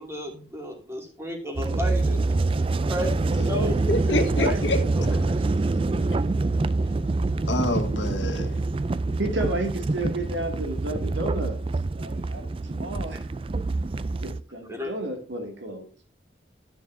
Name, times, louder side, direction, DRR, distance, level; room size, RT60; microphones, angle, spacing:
voice 1, 0.0-2.4 2.7-3.8 4.1-4.6 4.9-5.4 14.7-14.9, left 1 dB, 15° right, 2.6 m, -33 dB
sound 1, 1.6-14.4, right 3 dB, 30° right, 0.4 m, -26 dB
voice 2, 3.3-4.8 5.1-5.2 7.4-8.5, left 1 dB, 85° left, 1.6 m, -27 dB
voice 3, 9.2-11.6 11.9-13.2 14.2-15.9, right 1 dB, 85° right, 2.3 m, -32 dB
13.0 x 7.0 x 2.7 m
head